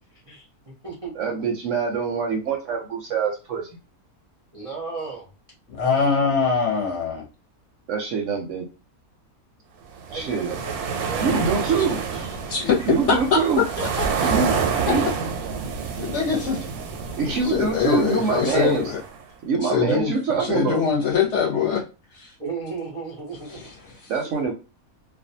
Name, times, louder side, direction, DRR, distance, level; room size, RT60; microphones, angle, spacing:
voice 1, 0.3-1.1 4.5-5.3 10.1-11.7 13.8-14.6 22.4-23.6, right 4 dB, 40° right, -3 dB, 0.4 m, -35 dB
voice 2, 1.1-3.8 7.9-8.7 10.1-10.6 11.2-12.0 12.9-13.6 14.2-14.5 14.9-15.3 17.2-18.8 19.5-20.9 24.1-24.5, right 5 dB, 65° right, 1 dB, 0.8 m, -24 dB
voice 3, 5.7-7.2 12.5-13.6 16.0-16.6 17.5-19.0 19.6-21.8 22.1-22.3 23.5-23.6, left 6 dB, 60° left, -1 dB, 0.8 m, -23 dB
sound 1, 10.0-19.2, right 6 dB, 85° right, 1.1 m, -28 dB
2.5 x 2.2 x 2.6 m, 0.30 s
omnidirectional pair, 1.6 m